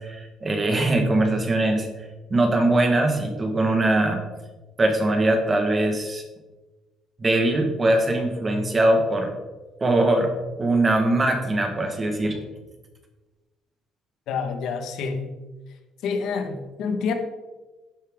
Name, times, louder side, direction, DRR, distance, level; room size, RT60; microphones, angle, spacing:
voice 1, 0.0-1.9 2.3-4.2 4.8-6.2 7.2-9.3 9.8-10.3 10.6-12.4, right 2 dB, 20° right, 4 dB, 1.5 m, -21 dB
voice 2, 14.3-15.3 16.0-17.1, left 5 dB, 70° left, 5 dB, 1.4 m, -27 dB
11.0 x 9.8 x 3.7 m, 1.2 s
cardioid pair, 165°, 0 cm